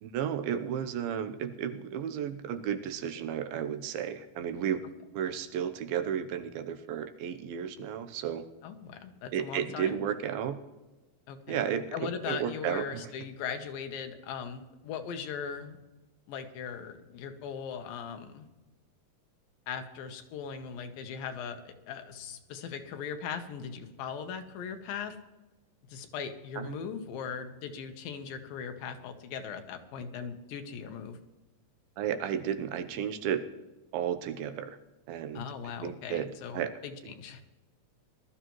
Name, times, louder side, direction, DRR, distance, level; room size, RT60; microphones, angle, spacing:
voice 1, 0.0-4.8 5.1-8.5 9.3-10.6 11.5-13.0 26.6-26.8 32.0-33.4 33.9-34.8 35.1-35.5 35.8-36.7, right 9 dB, 90° right, 9 dB, 2.7 m, -33 dB
voice 2, 8.6-10.0 11.3-11.7 11.9-15.8 16.3-18.5 19.7-25.2 25.9-31.2 35.3-37.4, left 7 dB, 80° left, 6 dB, 2.8 m, -39 dB
20.0 x 12.5 x 3.1 m, 1.1 s
omnidirectional pair, 4.1 m